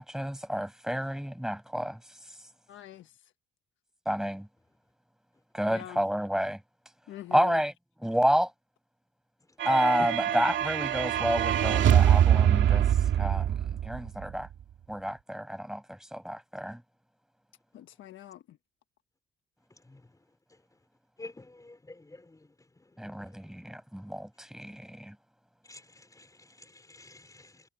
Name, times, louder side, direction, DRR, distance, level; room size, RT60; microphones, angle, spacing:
voice 1, 0.0-2.0 4.0-4.5 5.5-6.6 7.3-7.7 8.0-8.5 9.6-12.9 13.1-14.5 14.9-16.8 23.0-25.2, equal, 5° right, 6.3 m, -30 dB
voice 2, 2.7-3.1 5.7-6.0 7.1-7.6 17.7-18.6, left 13 dB, 75° left, 1.3 m, -44 dB
sound 1, 9.6-14.3, right 10 dB, 70° right, 2.2 m, -24 dB
voice 3, 21.2-22.4 23.0-23.4 25.7-27.6, left 2 dB, 15° left, 3.9 m, -50 dB
cardioid pair, 90°, 20 cm